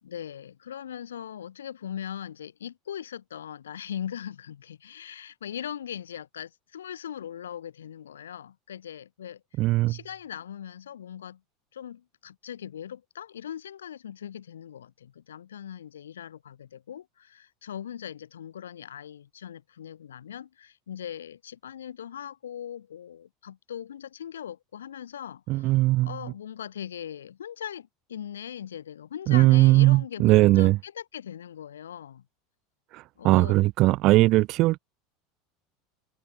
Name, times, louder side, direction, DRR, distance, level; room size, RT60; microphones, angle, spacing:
voice 1, 0.0-9.4 9.9-11.4 11.7-32.2 33.2-33.6, left 9 dB, 90° left, 3.2 m, -40 dB
voice 2, 9.6-10.0 25.5-26.1 29.3-30.8 33.2-34.8, right 18 dB, 55° right, 0.8 m, -19 dB
hypercardioid pair, 90°, 0 cm